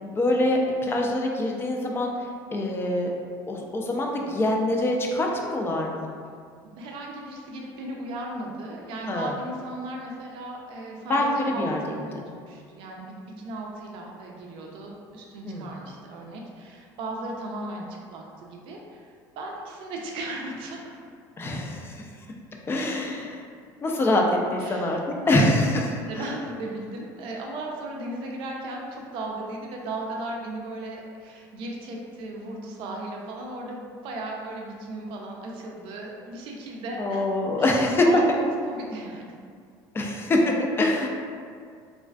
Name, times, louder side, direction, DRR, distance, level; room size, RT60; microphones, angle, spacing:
voice 1, 0.0-2.3 2.5-3.1 3.5-6.1 9.1-9.3 11.1-12.0 15.4-15.7 21.4-22.1 22.7-23.4 23.8-24.2 24.5-26.3 37.0-38.1 39.9-41.1, left 1 dB, 25° left, 0 dB, 0.3 m, -25 dB
voice 2, 6.8-12.0 12.3-21.0 24.6-25.0 25.3-25.5 25.9-37.2 37.6-39.4, right 1 dB, 65° right, -1 dB, 0.4 m, -36 dB
2.4 x 2.3 x 2.2 m, 2.2 s
supercardioid pair, 100°, 10 cm